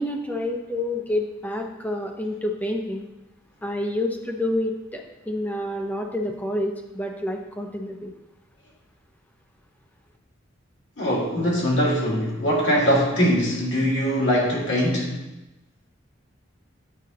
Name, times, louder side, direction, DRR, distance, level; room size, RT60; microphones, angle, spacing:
voice 1, 0.0-3.1 3.6-8.1, left 1 dB, 10° left, 1 dB, 0.6 m, -28 dB
voice 2, 11.0-15.2, equal, 65° left, -5 dB, 2.1 m, -22 dB
9.2 x 5.1 x 2.8 m, 0.99 s
head